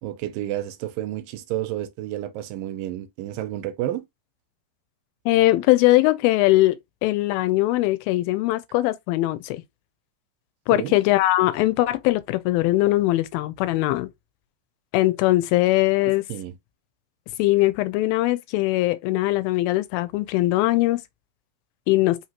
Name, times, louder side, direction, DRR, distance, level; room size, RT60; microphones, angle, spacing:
voice 1, 0.0-4.0 10.7-10.9 16.3-16.6, right 13 dB, 80° right, 2.3 m, -30 dB
voice 2, 5.3-9.6 10.7-14.1 14.9-16.2 17.4-21.0 21.9-22.2, left 17 dB, 90° left, 2.4 m, -21 dB
5.4 x 2.8 x 2.9 m
omnidirectional pair, 4.1 m